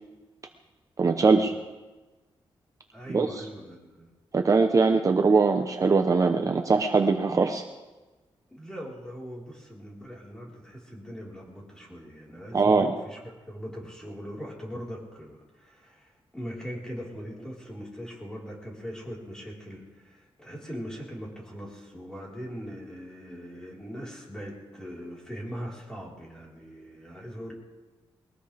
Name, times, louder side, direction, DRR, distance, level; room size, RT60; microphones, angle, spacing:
voice 1, 1.0-1.5 3.1-3.3 4.3-7.6 12.5-12.9, right 4 dB, 35° right, 5 dB, 0.8 m, -21 dB
voice 2, 2.9-4.1 8.5-27.5, equal, 5° left, -4 dB, 4.3 m, -41 dB
21.5 x 18.0 x 3.5 m, 1.2 s
wide cardioid pair, 135°, 10 cm